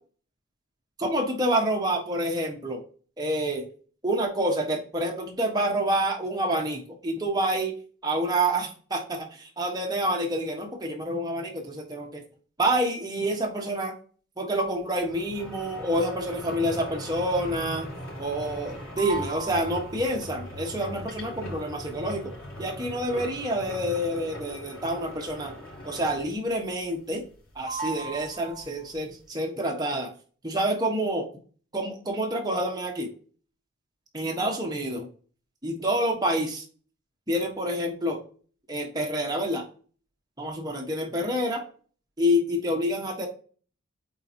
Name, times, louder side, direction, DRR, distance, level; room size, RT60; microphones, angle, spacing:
voice 1, 1.0-2.8 3.2-3.7 4.0-7.7 8.0-12.2 12.6-13.9 14.4-17.9 18.2-22.3 22.6-25.6 25.8-27.2 27.5-30.1 30.4-31.3 31.7-33.1 34.1-35.1 35.6-36.6 37.3-38.2 38.7-39.7 40.4-41.6 42.2-43.3, right 1 dB, 20° right, 0 dB, 1.3 m, -28 dB
sound 1, 15.0-26.5 26.8-27.4 27.7-29.0, right 1 dB, 80° left, 3.5 m, -39 dB
8.7 x 3.9 x 2.9 m, 0.41 s
head